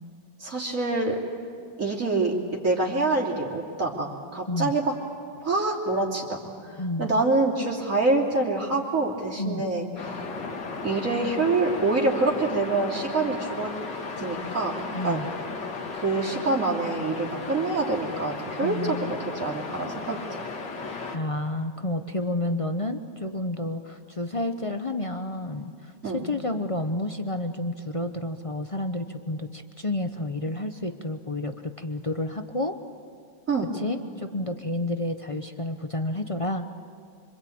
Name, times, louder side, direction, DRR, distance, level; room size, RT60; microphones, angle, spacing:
voice 1, 0.4-1.2 1.8-4.9 5.4-10.2 10.8-13.7 14.2-14.7 15.0-15.2 15.9-20.4 26.0-26.2 33.5-33.7, right 3 dB, 45° right, -2 dB, 3.5 m, -26 dB
voice 2, 6.8-7.2 9.4-9.6 14.9-15.3 18.6-19.1 21.1-32.8 33.7-36.7, left 1 dB, 40° left, 7 dB, 0.5 m, -30 dB
sound 1, 10.0-21.2, left 4 dB, 70° left, 2.4 m, -35 dB
26.0 x 26.0 x 8.7 m, 2.2 s
omnidirectional pair, 2.0 m